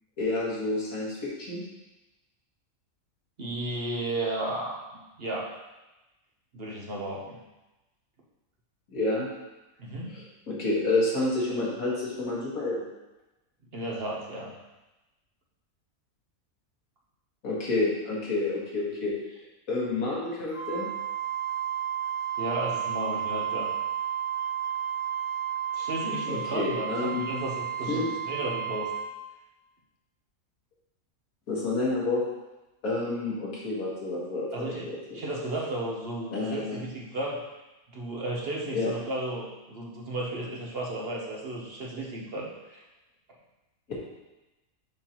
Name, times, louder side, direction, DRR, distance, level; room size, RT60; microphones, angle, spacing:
voice 1, 0.2-1.6 8.9-9.3 10.1-12.9 17.4-19.1 19.7-20.9 26.3-27.3 27.9-28.1 31.5-32.2 32.8-35.0 36.3-36.8 38.7-38.9, left 2 dB, 75° left, -5 dB, 2.0 m, -29 dB
voice 2, 3.4-5.5 6.5-7.4 9.8-10.2 13.7-14.6 22.4-23.7 25.7-28.9 34.5-34.9 35.1-37.4 37.9-42.8, right 1 dB, 50° right, -2 dB, 1.0 m, -34 dB
Wind instrument woodwind instrument, 20.5-29.1, right 9 dB, 55° left, 1.4 m, -32 dB
6.4 x 5.6 x 3.0 m, 1.0 s
omnidirectional pair, 1.5 m